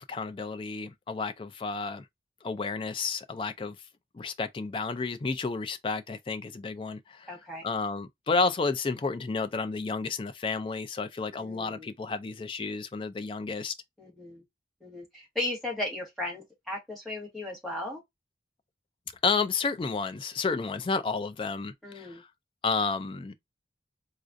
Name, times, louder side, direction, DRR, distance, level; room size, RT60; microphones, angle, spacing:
voice 1, 0.0-2.0 2.4-3.8 4.1-7.3 7.6-13.7 19.2-22.3 22.6-23.3, left 4 dB, 30° left, 0.3 m, -31 dB
voice 2, 7.3-7.6 11.4-11.9 14.0-14.4 14.8-18.0 21.8-22.2, left 1 dB, ahead, 1.3 m, -36 dB
4.0 x 2.4 x 2.5 m
head